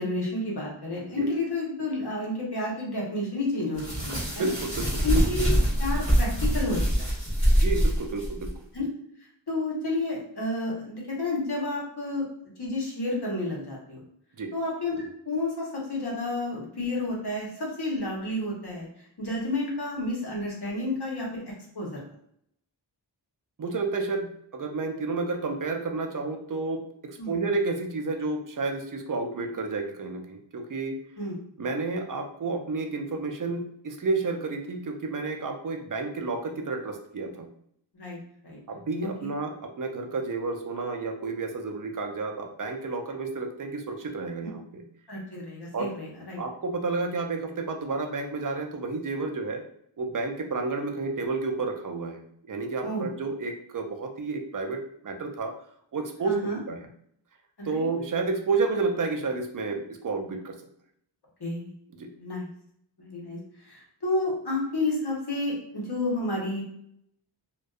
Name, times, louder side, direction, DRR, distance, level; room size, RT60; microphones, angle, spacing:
voice 1, 0.0-4.5 5.0-5.5 5.8-7.1 8.7-8.9 9.5-12.3 12.6-14.0 14.5-18.9 19.2-22.0 27.2-27.4 31.2-31.4 37.9-38.2 38.4-38.6 39.2-39.3 45.1-46.4 52.8-53.1 56.2-56.6 57.6-57.9 61.4-61.7 62.2-62.5 63.0-63.4 63.6-66.6, left 2 dB, 55° left, -3 dB, 1.0 m, -30 dB
sound 1, 3.8-8.5, equal, 15° left, 1.4 m, -24 dB
voice 2, 4.3-5.2 7.6-8.5 14.4-14.5 23.6-24.3 24.5-31.0 31.6-37.5 38.7-44.8 45.7-45.9 46.4-49.6 50.0-55.5 55.9-56.9 57.6-60.5 62.0-62.1, right 3 dB, 45° right, 4 dB, 0.5 m, -31 dB
2.5 x 2.2 x 2.3 m, 0.69 s
wide cardioid pair, 45°, 47 cm